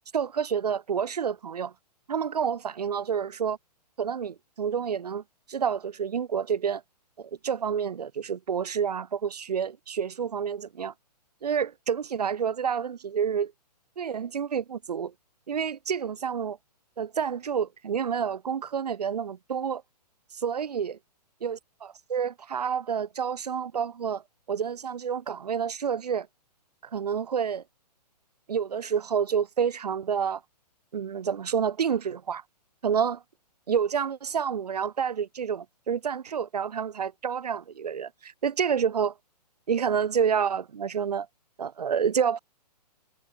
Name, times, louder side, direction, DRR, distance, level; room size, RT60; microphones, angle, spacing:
voice 1, 0.1-1.7 2.1-3.6 4.0-5.2 5.5-6.8 7.2-10.9 11.4-13.5 14.0-15.1 15.5-16.6 17.0-19.8 20.3-20.9 21.4-24.2 24.5-26.3 26.9-27.6 28.5-30.4 30.9-32.4 32.8-33.2 33.7-39.1 39.7-41.3 41.6-42.4, right 7 dB, 70° right, 5.8 m, -28 dB
figure-of-eight pair, 125°, 21 cm